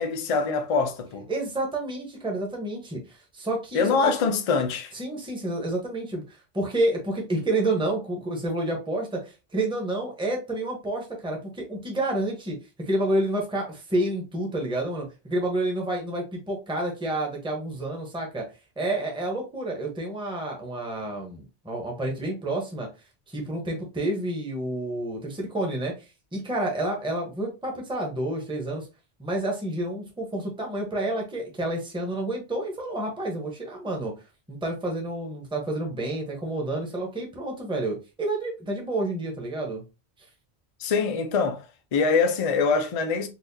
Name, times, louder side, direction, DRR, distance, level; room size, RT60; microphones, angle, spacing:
voice 1, 0.0-1.3 3.7-4.9 40.8-41.7 41.9-43.3, left 5 dB, 45° left, 0.5 m, -24 dB
voice 2, 1.3-4.1 4.9-18.4 18.8-22.9 23.3-25.9 26.3-28.9 29.2-34.1 34.5-39.8 40.2-40.3, right 1 dB, 5° right, 0.8 m, -29 dB
4.1 x 2.4 x 2.6 m
omnidirectional pair, 1.1 m